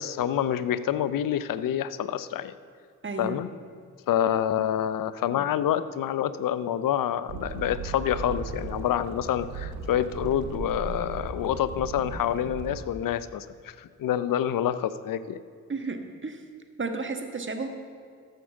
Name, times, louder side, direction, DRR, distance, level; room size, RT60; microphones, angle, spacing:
voice 1, 0.0-2.6 3.2-3.5 4.1-15.4, left 10 dB, 65° left, 15 dB, 0.6 m, -27 dB
voice 2, 3.0-3.4 15.7-16.4 16.8-17.7, right 3 dB, 35° right, 5 dB, 1.5 m, -32 dB
sound 1, 7.3-12.8, right 5 dB, 85° right, 1.0 m, -37 dB
13.5 x 6.5 x 6.0 m, 2.2 s
supercardioid pair, 40°, 36 cm